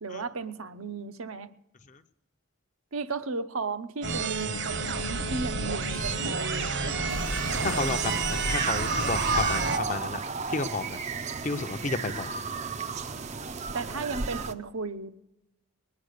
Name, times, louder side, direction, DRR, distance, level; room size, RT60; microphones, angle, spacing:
voice 1, 0.0-1.5 2.9-7.0 13.7-15.2, right 4 dB, 75° right, 9 dB, 0.8 m, -35 dB
sound 1, 4.0-9.8, right 4 dB, 55° right, 1.1 m, -30 dB
sound 2, 7.1-14.5, right 4 dB, 30° right, 0.5 m, -33 dB
voice 2, 7.6-10.2 10.5-11.0 11.4-12.3, left 3 dB, 35° left, 9 dB, 0.6 m, -31 dB
20.5 x 9.5 x 6.5 m, 0.98 s
head